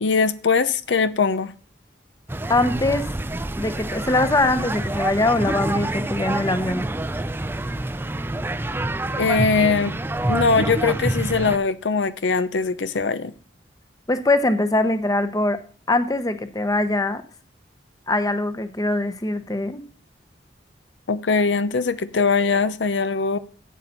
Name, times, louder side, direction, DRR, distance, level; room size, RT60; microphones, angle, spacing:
voice 1, 0.0-1.5 9.2-9.9 10.3-13.3 21.1-23.4, left 4 dB, 85° left, 13 dB, 0.7 m, -21 dB
sound 1, 2.3-11.6, right 1 dB, 10° right, 0.4 m, -27 dB
voice 2, 2.5-3.1 3.6-6.9 14.1-15.6 15.9-17.2 18.1-19.8, left 2 dB, 20° left, 10 dB, 0.8 m, -22 dB
12.0 x 8.2 x 4.1 m, 0.40 s
head